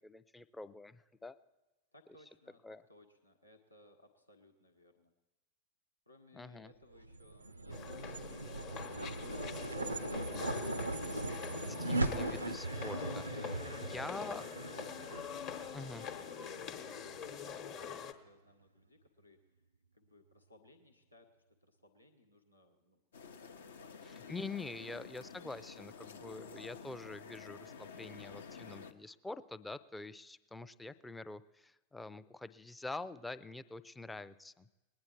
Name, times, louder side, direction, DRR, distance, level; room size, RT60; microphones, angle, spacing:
voice 1, 0.0-1.4 2.6-2.8 6.3-6.7 11.9-14.4 15.7-16.0 24.1-34.7, left 3 dB, 5° left, 14 dB, 0.4 m, -46 dB
voice 2, 1.9-2.6 2.9-5.1 6.1-11.9 13.6-19.4 19.9-21.3 21.6-23.9 24.2-24.3, left 1 dB, 85° left, 4 dB, 1.1 m, -64 dB
sound 1, 7.0-17.5, right 2 dB, 80° right, 0.4 m, -40 dB
sound 2, 7.7-18.1, left 7 dB, 40° left, 1.0 m, -44 dB
sound 3, 23.1-28.9, left 5 dB, 65° left, 0.7 m, -51 dB
20.5 x 9.5 x 4.5 m, 1.1 s
figure-of-eight pair, 90°, 0 cm